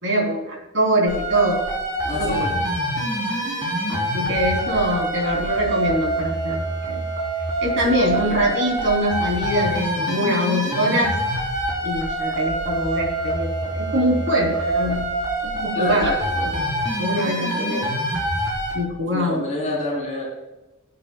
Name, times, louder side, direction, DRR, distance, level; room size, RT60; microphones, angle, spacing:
voice 1, 0.0-1.6 2.1-2.6 3.9-6.6 6.9-7.1 7.6-11.2 11.8-15.1 15.4-16.1 16.4-16.6 17.0-17.9 18.7-19.4, equal, 65° right, 0 dB, 3.5 m, -23 dB
sound 1, 1.1-18.7, right 1 dB, 20° right, 4.1 m, -25 dB
voice 2, 2.0-2.5 7.8-8.3 15.7-16.5 17.5-17.8 19.1-20.2, left 1 dB, 35° left, -3 dB, 4.0 m, -29 dB
19.5 x 8.5 x 2.4 m, 1.1 s
head